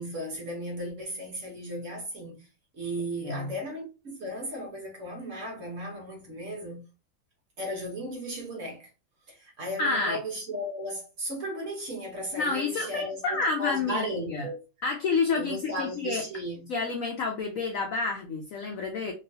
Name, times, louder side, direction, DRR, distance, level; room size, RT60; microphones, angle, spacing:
voice 1, 0.0-2.5 2.7-6.8 7.6-8.9 9.3-14.6 15.3-16.7, equal, 50° right, 1.1 m, -35 dB
voice 2, 9.8-10.2 12.3-14.5 14.8-16.2 16.7-19.1, left 4 dB, 85° left, 0.7 m, -29 dB
3.0 x 3.0 x 2.7 m
omnidirectional pair, 2.0 m